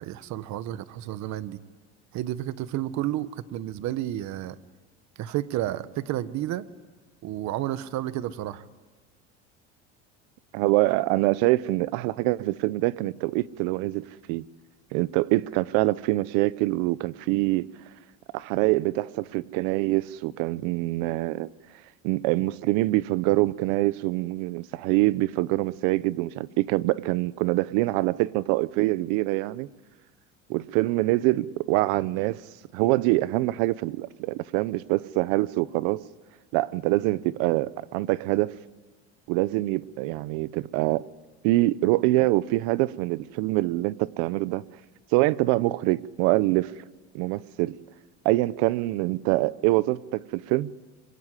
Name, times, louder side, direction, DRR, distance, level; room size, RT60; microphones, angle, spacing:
voice 1, 0.0-1.6 2.1-4.6 5.2-6.7 7.2-8.6, right 13 dB, 60° right, 1.3 m, -31 dB
voice 2, 10.5-14.5 14.9-17.7 18.3-21.5 22.0-29.7 30.5-32.4 32.7-36.0 36.5-38.5 39.3-41.0 41.4-44.6 45.1-46.7 47.1-47.7 48.2-50.7, right 19 dB, 75° right, 0.9 m, -25 dB
26.0 x 23.0 x 10.0 m
supercardioid pair, 110°, 32 cm